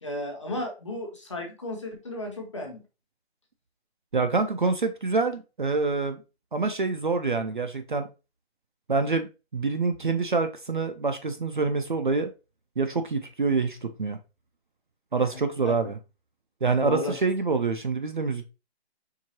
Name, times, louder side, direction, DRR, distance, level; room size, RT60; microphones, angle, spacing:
voice 1, 0.0-2.8 15.6-15.7 16.8-17.2, left 1 dB, 30° left, 1.0 m, -33 dB
voice 2, 4.1-6.2 6.5-8.1 8.9-12.3 12.8-14.2 15.1-16.0 16.6-18.4, right 4 dB, 50° right, 0.4 m, -26 dB
4.6 x 3.6 x 2.9 m
hypercardioid pair, 175°, 33 cm